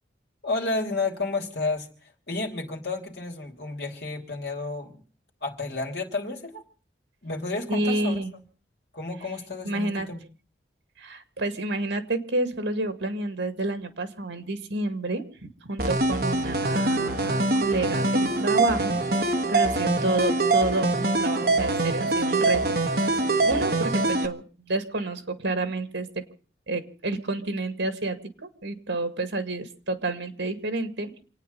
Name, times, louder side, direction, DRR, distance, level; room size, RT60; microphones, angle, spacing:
voice 1, 0.4-5.0 5.4-6.6 7.2-8.2 8.9-10.2, left 3 dB, 60° left, 3.0 m, -31 dB
voice 2, 7.7-8.3 9.6-10.1 11.0-23.2 23.5-26.2 26.7-31.1, right 2 dB, 80° right, 2.2 m, -29 dB
sound 1, 15.8-24.3, right 2 dB, 55° right, 1.4 m, -24 dB
28.0 x 9.5 x 5.5 m
head